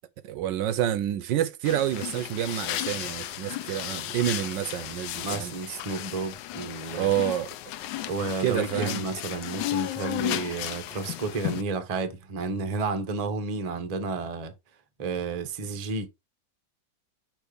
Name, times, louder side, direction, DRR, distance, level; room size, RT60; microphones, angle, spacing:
voice 1, 0.2-5.5 6.9-7.5 8.4-9.1, right 11 dB, 75° right, 1.2 m, -28 dB
sound 1, 1.6-11.6, left 14 dB, 75° left, 1.1 m, -34 dB
voice 2, 5.2-7.1 8.1-14.5 15.0-16.1, right 4 dB, 35° right, 0.6 m, -31 dB
6.3 x 3.1 x 4.9 m
omnidirectional pair, 2.1 m